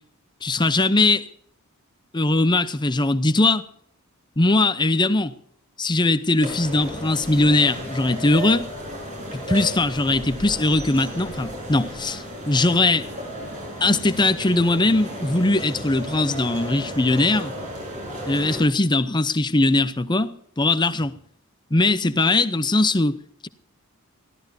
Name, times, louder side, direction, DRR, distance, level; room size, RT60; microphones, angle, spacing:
voice 1, 0.4-1.3 2.1-3.6 4.4-5.3 5.8-8.7 9.3-13.1 13.8-17.5 18.3-21.1 21.7-23.2, left 2 dB, 20° left, 0.7 m, -20 dB
sound 1, 6.4-18.6, equal, 35° right, 7.2 m, -34 dB
22.0 x 15.0 x 2.8 m
head